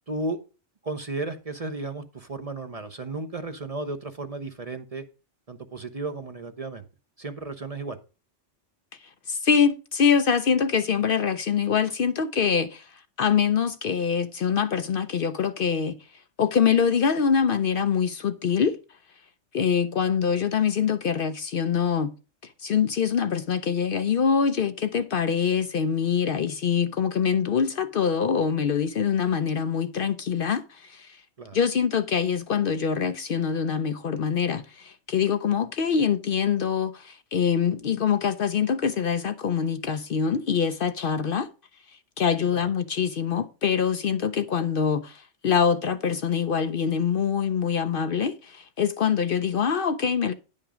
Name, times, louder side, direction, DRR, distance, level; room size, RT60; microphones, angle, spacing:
voice 1, 0.1-0.4 0.8-5.0 5.5-6.8 7.2-8.0 31.4-31.6 42.5-42.7, right 2 dB, 35° right, 0.7 m, -34 dB
voice 2, 9.3-16.0 16.4-18.8 19.5-22.1 22.6-31.2 31.5-41.5 42.2-50.3, left 7 dB, 60° left, 0.7 m, -24 dB
10.0 x 5.5 x 4.9 m
omnidirectional pair, 1.2 m